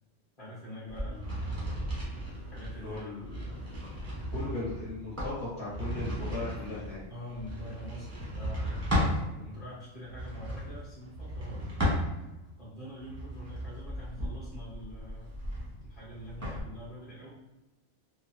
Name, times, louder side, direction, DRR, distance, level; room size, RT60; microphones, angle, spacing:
voice 1, 0.4-2.0 2.5-3.7 7.1-11.7 12.6-15.4 15.8-17.3, equal, 30° left, -10 dB, 0.9 m, -45 dB
sound 1, 0.9-9.2 10.0-12.5 13.0-16.6, equal, 15° right, 0.6 m, -35 dB
voice 2, 2.8-3.6 4.1-7.0, left 3 dB, 60° left, -10 dB, 1.5 m, -38 dB
3.1 x 2.1 x 2.6 m, 0.98 s
omnidirectional pair, 1.4 m